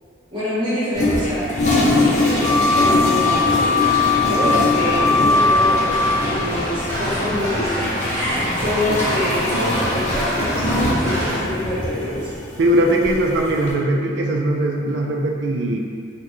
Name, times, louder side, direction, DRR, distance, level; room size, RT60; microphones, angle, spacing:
voice 1, 0.3-12.3, left 1 dB, 25° right, -12 dB, 1.0 m, -26 dB
Toilet flush, 0.9-13.7, left 2 dB, 40° left, 0.5 m, -23 dB
sound 1, 1.9-11.4, equal, 40° right, 1.5 m, -27 dB
Wind instrument woodwind instrument, 2.4-6.4, left 4 dB, 80° left, 0.7 m, -19 dB
voice 2, 12.6-15.8, right 1 dB, 70° right, 0 dB, 0.4 m, -20 dB
3.8 x 2.2 x 3.1 m, 2.3 s
head